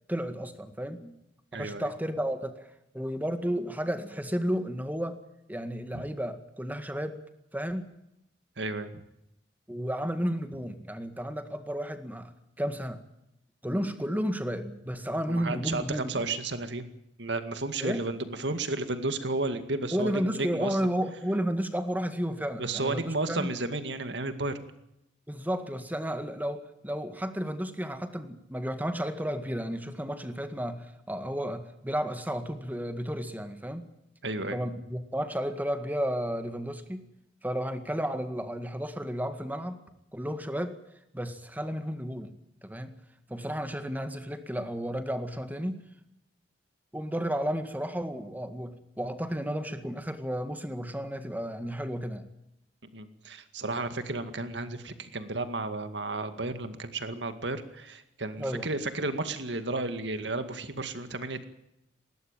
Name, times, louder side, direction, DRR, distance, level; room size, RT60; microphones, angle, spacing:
voice 1, 0.1-1.1 1.5-5.2 5.5-7.2 7.5-7.9 9.7-12.3 12.6-13.0 13.6-16.3 17.8-18.0 19.9-23.5 25.3-33.9 34.5-37.0 37.4-39.8 40.1-40.8 41.1-42.3 42.6-42.9 43.3-45.8 46.9-52.3 58.4-58.7, equal, 10° right, 8 dB, 2.0 m, -32 dB
voice 2, 1.5-1.9 5.9-6.0 8.6-9.0 15.3-16.9 17.2-20.8 22.6-24.6 34.2-34.6 52.9-61.4, right 2 dB, 70° right, 9 dB, 2.2 m, -33 dB
20.5 x 18.0 x 9.1 m, 0.82 s
head